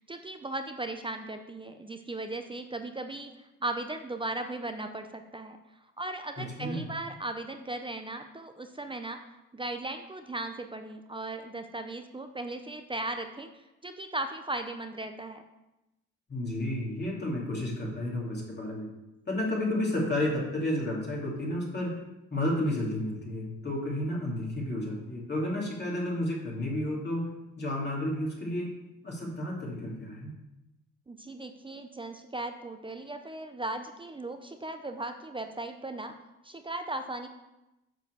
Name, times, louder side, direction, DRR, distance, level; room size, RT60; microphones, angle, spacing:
voice 1, 0.0-3.3 3.6-5.6 6.0-9.2 9.5-13.5 13.8-15.4 31.1-36.1 36.4-37.3, right 2 dB, 15° right, 7 dB, 0.6 m, -37 dB
voice 2, 6.4-6.9 16.3-18.9 19.3-22.0 22.3-28.7 29.0-30.3, left 1 dB, 35° left, -4 dB, 2.9 m, -31 dB
8.1 x 4.6 x 6.8 m, 0.95 s
cardioid pair, 90°, 30 cm